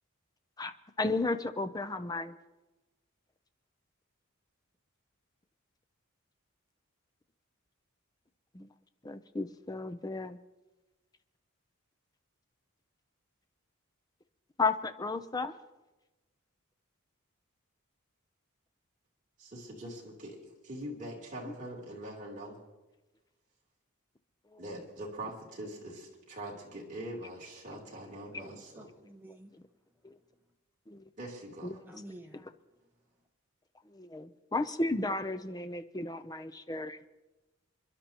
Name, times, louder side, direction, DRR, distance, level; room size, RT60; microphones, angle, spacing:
voice 1, 0.6-2.4 8.5-8.7 9.0-10.4 14.6-15.5 21.4-21.5 24.5-24.6 29.3-29.4 30.0-30.2 30.9-31.0 31.6-31.8 32.3-32.4 33.8-37.0, left 3 dB, 20° left, 10 dB, 0.6 m, -34 dB
voice 2, 19.4-22.6 24.6-28.9 31.2-31.8, right 1 dB, 35° right, -3 dB, 3.4 m, -43 dB
voice 3, 28.3-29.5 31.9-32.4, right 1 dB, 10° right, 2 dB, 1.2 m, -50 dB
28.5 x 11.5 x 3.0 m, 1.1 s
head